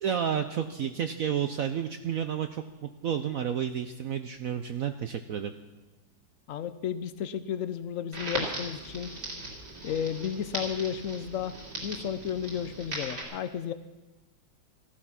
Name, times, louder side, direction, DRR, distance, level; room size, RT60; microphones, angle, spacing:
voice 1, 0.0-5.5, right 8 dB, 70° right, 8 dB, 0.8 m, -31 dB
voice 2, 6.5-9.1 9.8-11.6 11.8-13.7, left 8 dB, 75° left, 12 dB, 0.7 m, -33 dB
Crackle, 8.1-13.2, right 2 dB, 55° right, 3.8 m, -38 dB
14.5 x 14.5 x 5.8 m, 1.1 s
omnidirectional pair, 2.1 m